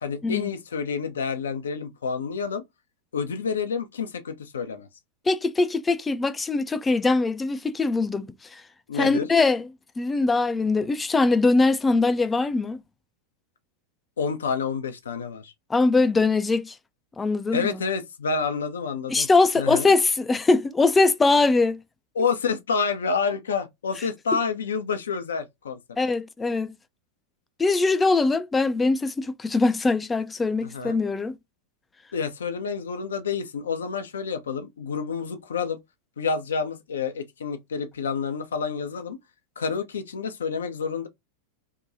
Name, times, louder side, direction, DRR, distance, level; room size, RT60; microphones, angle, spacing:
voice 1, 0.0-2.6 3.1-4.9 8.9-9.3 14.2-15.5 17.5-19.3 19.6-19.9 22.1-25.8 30.6-31.0 32.1-35.8 36.2-39.2 39.6-41.1, left 5 dB, 65° left, 0.5 m, -28 dB
voice 2, 5.3-8.6 8.9-9.7 10.0-12.8 15.7-16.8 17.2-17.7 19.1-21.8 26.0-26.7 27.6-31.4, left 3 dB, 15° left, 0.3 m, -22 dB
2.7 x 2.2 x 2.5 m
figure-of-eight pair, 90°, 0 cm